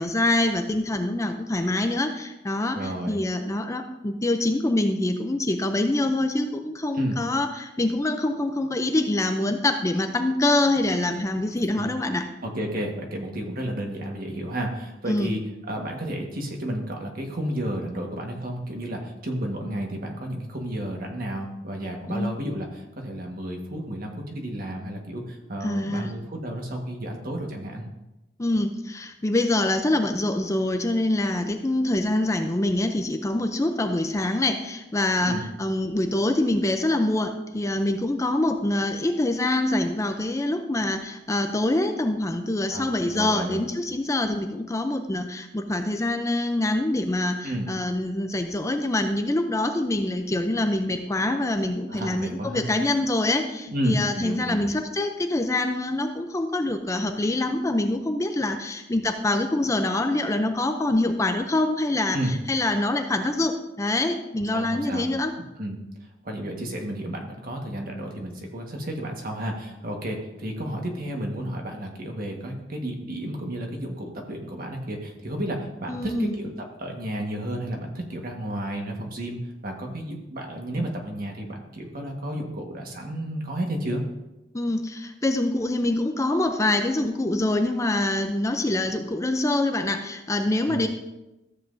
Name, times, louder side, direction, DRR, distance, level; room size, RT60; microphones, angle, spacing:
voice 1, 0.0-12.3 15.1-15.3 22.1-22.4 25.6-26.1 28.4-65.3 75.9-76.4 80.8-80.9 84.5-90.9, left 1 dB, 15° left, 6 dB, 0.5 m, -25 dB
voice 2, 2.7-3.2 6.9-7.2 11.7-11.9 12.4-27.8 35.2-35.4 42.7-43.6 47.4-47.7 51.9-52.7 53.7-54.6 62.1-62.3 64.4-65.0 65.6-65.8 66.2-76.5 76.8-79.4 79.6-84.0 90.6-90.8, right 1 dB, 50° right, 2 dB, 1.5 m, -32 dB
13.5 x 7.5 x 2.6 m, 0.97 s
head